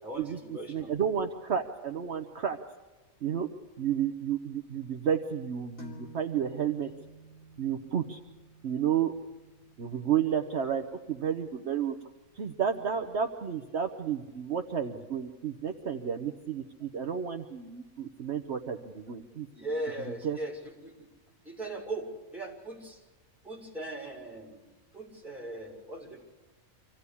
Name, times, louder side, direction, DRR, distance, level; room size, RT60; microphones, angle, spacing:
voice 1, 0.0-0.9 19.5-21.1 21.4-23.0 23.4-24.6 24.9-26.2, right 1 dB, ahead, -3 dB, 5.7 m, -39 dB
voice 2, 0.7-2.6 3.2-3.5 3.8-6.9 7.6-8.2 8.6-9.1 9.8-12.0 12.4-19.5 20.2-20.4, right 8 dB, 55° right, 5 dB, 1.2 m, -31 dB
sound 1, 5.8-13.3, right 1 dB, 85° left, 3.2 m, -54 dB
26.0 x 16.0 x 8.4 m, 1.2 s
omnidirectional pair, 1.4 m